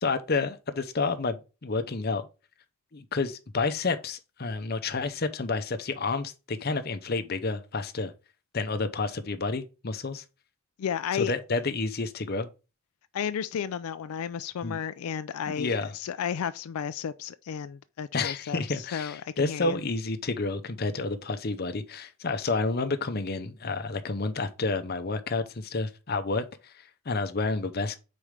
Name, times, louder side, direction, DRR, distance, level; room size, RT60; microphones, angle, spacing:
voice 1, 0.0-2.3 2.9-8.1 8.5-10.2 11.1-12.5 14.6-14.8 15.5-15.9 18.1-28.0, left 3 dB, 45° left, 0.7 m, -30 dB
voice 2, 10.8-11.3 13.1-19.8, left 8 dB, 85° left, 0.4 m, -33 dB
4.8 x 4.3 x 5.0 m
head